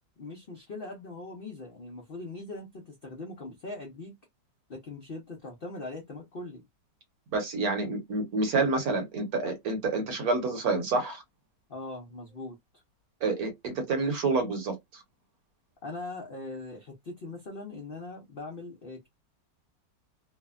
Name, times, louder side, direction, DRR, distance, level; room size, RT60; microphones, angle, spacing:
voice 1, 0.2-4.1 4.7-6.6 11.7-12.6 15.8-19.1, left 2 dB, 75° left, 0.5 m, -41 dB
voice 2, 7.3-11.2 13.2-15.0, right 3 dB, 60° right, 1.2 m, -28 dB
3.2 x 2.1 x 2.3 m
omnidirectional pair, 2.0 m